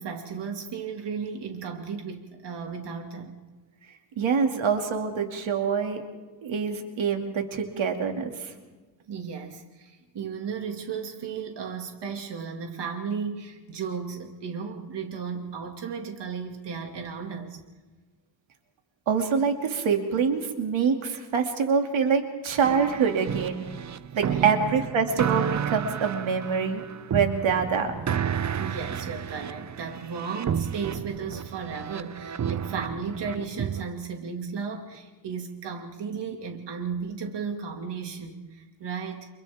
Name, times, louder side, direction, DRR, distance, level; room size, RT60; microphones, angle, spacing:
voice 1, 0.0-3.4 9.1-17.6 24.3-24.6 28.6-39.3, right 6 dB, 60° right, 3 dB, 2.2 m, -35 dB
voice 2, 4.2-6.0 6.4-8.5 19.1-23.6 24.2-26.8 27.1-27.9, right 6 dB, 75° right, 4 dB, 2.4 m, -25 dB
sound 1, 22.6-33.8, right 8 dB, 40° right, 0.6 m, -32 dB
29.5 x 28.0 x 3.5 m, 1.3 s
wide cardioid pair, 130°, 47 cm